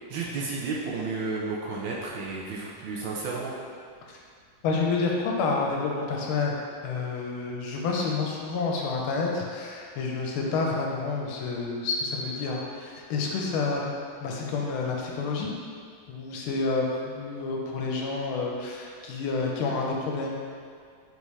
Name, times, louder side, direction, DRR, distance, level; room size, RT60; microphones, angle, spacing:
voice 1, 0.1-3.5, right 4 dB, 75° right, -4 dB, 1.2 m, -32 dB
voice 2, 4.6-6.6 6.8-15.5 16.1-20.4, left 4 dB, 80° left, -1 dB, 1.5 m, -29 dB
4.1 x 3.5 x 3.1 m, 2.1 s
omnidirectional pair, 2.3 m